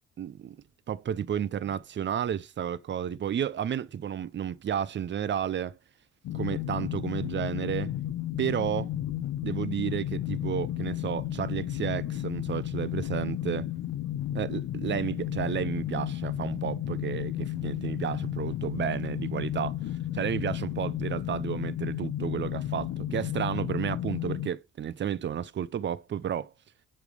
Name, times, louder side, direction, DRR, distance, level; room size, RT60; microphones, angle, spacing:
voice 1, 0.2-0.6 0.9-5.8 6.3-7.9 8.4-8.9 9.4-13.7 14.3-26.5, right 9 dB, 40° right, 0.5 m, -32 dB
sound 1, 6.2-24.5, left 12 dB, 65° left, 0.7 m, -33 dB
8.1 x 3.3 x 5.4 m
cardioid pair, 90°, 30 cm